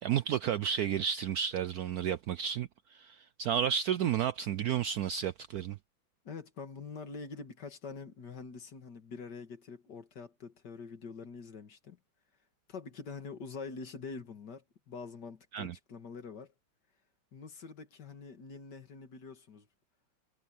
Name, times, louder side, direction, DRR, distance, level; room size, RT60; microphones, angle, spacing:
voice 1, 0.0-5.8 15.5-15.7, right 9 dB, 70° right, 0.9 m, -32 dB
voice 2, 6.2-12.0 12.7-16.5 17.3-19.7, left 4 dB, 60° left, 2.5 m, -45 dB
omnidirectional pair, 2.1 m